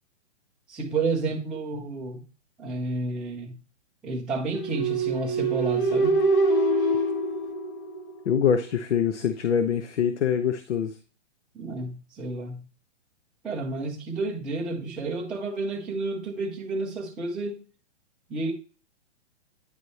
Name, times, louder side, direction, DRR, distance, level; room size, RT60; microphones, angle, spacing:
voice 1, 0.7-2.2 2.6-3.6 4.0-6.2 11.5-12.6 13.4-17.6 18.3-18.5, right 3 dB, ahead, 0.4 m, -31 dB
sound 1, 4.6-8.4, right 2 dB, 50° left, 1.4 m, -24 dB
voice 2, 8.3-10.9, left 8 dB, 80° left, 0.9 m, -24 dB
9.4 x 3.2 x 4.0 m
hypercardioid pair, 150°, 35 cm